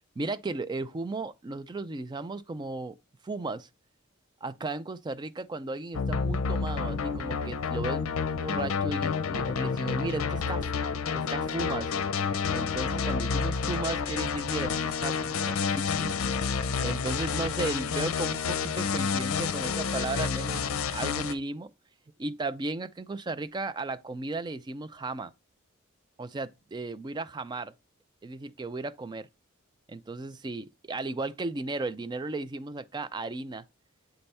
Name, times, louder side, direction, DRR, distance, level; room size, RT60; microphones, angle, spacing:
voice 1, 0.2-3.0 3.2-3.7 4.4-10.7 11.1-11.9 12.5-16.2 16.7-21.7 22.2-25.3 26.2-27.7 28.2-29.3 29.9-33.6, right 2 dB, 20° right, 0.3 m, -35 dB
sound 1, 5.9-21.3, left 5 dB, 85° left, 0.5 m, -29 dB
7.8 x 3.4 x 4.1 m
head